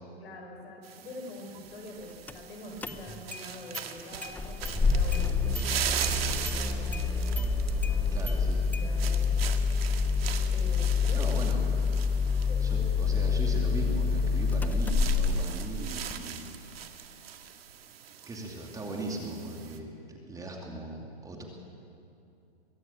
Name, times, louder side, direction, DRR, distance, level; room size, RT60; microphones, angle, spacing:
voice 1, 0.2-7.3 7.8-8.1 8.8-9.4 10.5-11.9 12.5-12.7, left 2 dB, 65° left, 2 dB, 5.8 m, -45 dB
sound 1, 0.8-19.8, right 9 dB, 65° right, 1.8 m, -40 dB
Engine starting, 2.3-2.4 2.8-3.4 3.7-3.8 4.2-16.1, left 4 dB, 5° left, 0.6 m, -27 dB
voice 2, 8.1-8.6 11.1-11.9 12.6-16.7 17.0-17.1 18.3-21.4, right 2 dB, 10° right, 0 dB, 2.6 m, -39 dB
22.5 x 15.5 x 8.9 m, 2.7 s
hypercardioid pair, 125°, 32 cm